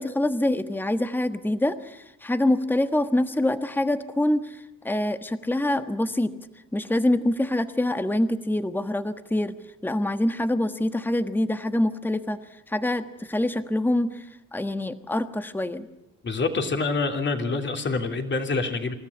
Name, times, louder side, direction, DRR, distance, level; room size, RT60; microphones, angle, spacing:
voice 1, 0.0-6.3 6.7-9.6 9.8-12.4 12.7-14.3 14.5-15.9, left 1 dB, 5° left, 10 dB, 1.3 m, -25 dB
voice 2, 16.2-18.9, left 3 dB, 40° left, 5 dB, 3.2 m, -26 dB
27.5 x 14.0 x 9.7 m, 0.94 s
cardioid pair, 90°, 30 cm